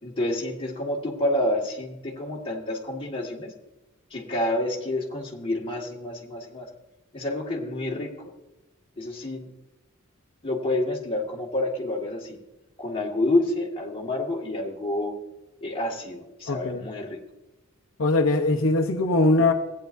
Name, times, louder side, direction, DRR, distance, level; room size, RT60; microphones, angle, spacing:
voice 1, 0.0-3.5 4.1-6.7 7.1-8.3 9.0-9.5 10.4-12.4 12.8-15.1 15.6-17.2, left 1 dB, 25° left, -2 dB, 1.8 m, -28 dB
voice 2, 16.5-16.8 18.0-19.5, left 2 dB, 65° left, 2 dB, 0.8 m, -21 dB
16.0 x 9.4 x 2.6 m, 1.0 s
head